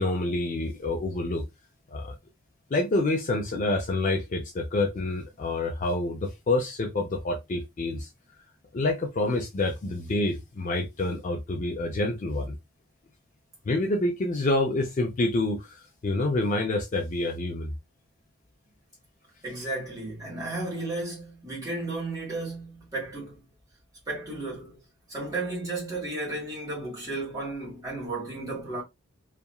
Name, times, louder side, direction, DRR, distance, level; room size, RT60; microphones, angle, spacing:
voice 1, 0.0-1.4 1.9-2.2 2.7-8.1 8.7-12.5 13.7-17.7, left 2 dB, 35° left, 0.3 m, -27 dB
voice 2, 19.4-23.4 24.1-24.8 25.1-28.8, right 2 dB, 15° right, 1.5 m, -33 dB
2.8 x 2.5 x 2.3 m
head